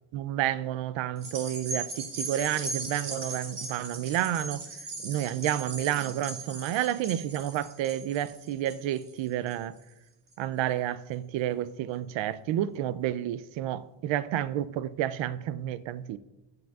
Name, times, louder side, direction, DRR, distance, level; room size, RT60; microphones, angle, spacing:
voice 1, 0.1-4.6 5.0-9.7 10.4-16.2, right 12 dB, 70° right, 0.5 m, -30 dB
sound 1, 1.2-9.8 10.3-10.4, right 3 dB, 45° right, 1.7 m, -38 dB
14.5 x 7.9 x 2.4 m
cardioid pair, 165°, 48 cm